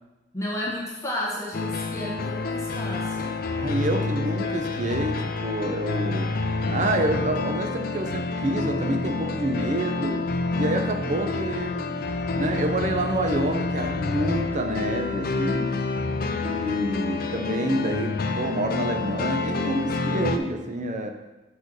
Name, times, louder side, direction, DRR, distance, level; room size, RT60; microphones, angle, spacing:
voice 1, 0.3-3.4, left 1 dB, 15° left, -5 dB, 1.4 m, -32 dB
sound 1, 1.5-20.4, left 3 dB, 55° left, 0.5 m, -28 dB
voice 2, 3.6-6.3 6.7-10.3 10.5-11.9 12.4-15.8 16.4-21.1, right 1 dB, 45° right, 5 dB, 0.7 m, -28 dB
7.6 x 4.5 x 4.8 m, 1.1 s
head